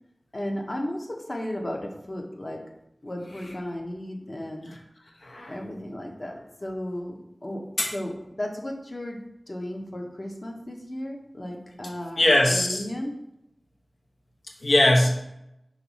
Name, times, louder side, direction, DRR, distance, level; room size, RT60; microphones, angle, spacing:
voice 1, 0.3-2.6 3.0-4.7 5.5-7.6 7.9-9.2 9.5-13.2, left 1 dB, 50° left, 1 dB, 1.1 m, -34 dB
voice 2, 5.2-5.5 7.8-7.9 12.2-12.8 14.6-15.2, left 1 dB, 90° left, -1 dB, 1.0 m, -20 dB
5.7 x 3.1 x 5.5 m, 0.84 s
wide cardioid pair, 45°, 0 cm